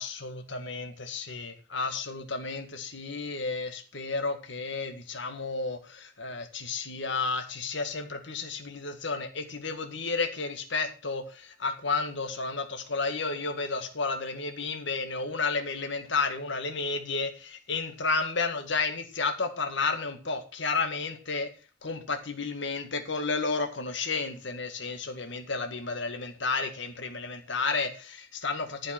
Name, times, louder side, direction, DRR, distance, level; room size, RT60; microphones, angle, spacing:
voice 1, 0.0-21.5 21.8-28.9, left 4 dB, 65° left, 6 dB, 1.9 m, -32 dB
14.0 x 5.7 x 6.1 m, 0.35 s
head